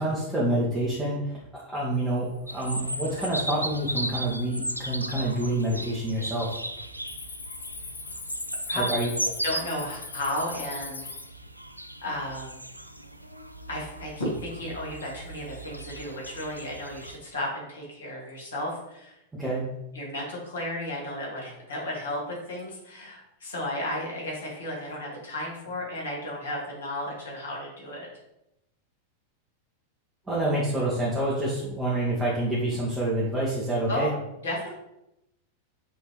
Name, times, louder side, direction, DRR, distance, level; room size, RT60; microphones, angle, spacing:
voice 1, 0.0-6.5 8.8-9.1 19.3-19.7 30.3-34.1, right 1 dB, 10° right, -7 dB, 1.1 m, -27 dB
Cricket, 2.2-2.7 3.1-3.6 4.2-4.3 4.9-5.5 5.7-6.0 6.4-11.2, left 4 dB, 50° left, 1.2 m, -40 dB
sound 1, 2.5-17.2, right 1 dB, 90° right, 0.3 m, -36 dB
voice 2, 9.2-11.0 12.0-12.6 13.7-19.2 19.9-28.1 33.9-34.2 34.4-34.7, left 1 dB, 65° left, -4 dB, 1.7 m, -33 dB
5.5 x 3.1 x 3.1 m, 0.87 s
figure-of-eight pair, 90°, 0 cm